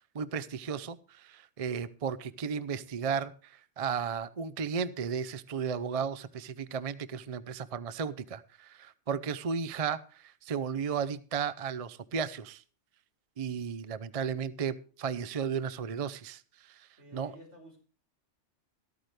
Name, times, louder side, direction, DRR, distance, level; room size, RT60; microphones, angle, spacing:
voice 1, 0.1-12.6 13.4-17.3, right 6 dB, 40° right, 15 dB, 0.6 m, -34 dB
voice 2, 1.8-2.3 17.0-17.8, right 1 dB, 85° right, 0 dB, 6.3 m, -54 dB
13.5 x 13.0 x 3.2 m, 0.38 s
omnidirectional pair, 1.2 m